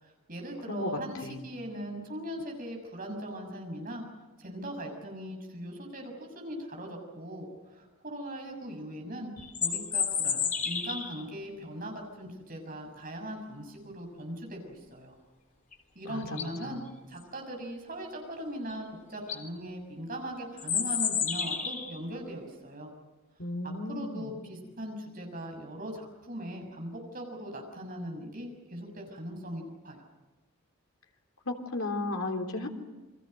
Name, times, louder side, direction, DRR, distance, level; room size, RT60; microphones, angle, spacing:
voice 1, 0.0-4.0 4.4-9.3 9.6-15.1 15.9-16.8 17.1-22.9 23.9-30.0, equal, 40° right, 2 dB, 6.5 m, -40 dB
voice 2, 0.7-1.4 16.0-16.8 23.4-24.4 31.4-32.7, left 2 dB, 70° left, 3 dB, 3.3 m, -35 dB
sound 1, 9.4-11.2 15.7-15.8 16.2-16.6 18.7-18.8 19.1-19.4 20.6-22.0, left 7 dB, 40° left, 3.5 m, -30 dB
29.5 x 23.0 x 6.6 m, 1.2 s
head